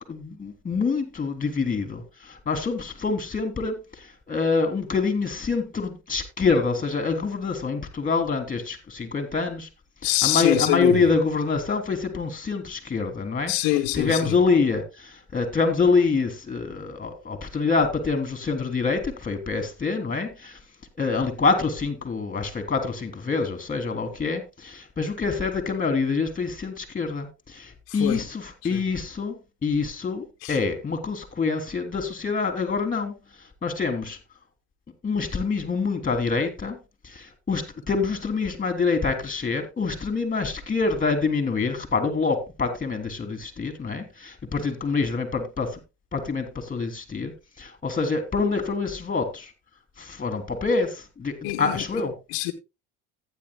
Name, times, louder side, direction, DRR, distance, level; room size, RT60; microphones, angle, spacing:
voice 1, 0.1-9.7 10.0-20.6 21.0-29.3 29.6-33.1 33.6-34.2 35.0-36.8 37.0-45.8 46.1-47.3 47.6-49.5 50.0-52.1, left 4 dB, 20° left, 3.1 m, -26 dB
voice 2, 10.0-11.0 13.5-14.3 27.9-28.2 28.7-28.8 30.4-30.5 51.4-51.8 52.3-52.5, left 17 dB, 90° left, 1.1 m, -24 dB
15.0 x 9.8 x 2.2 m
supercardioid pair, 95°, 37 cm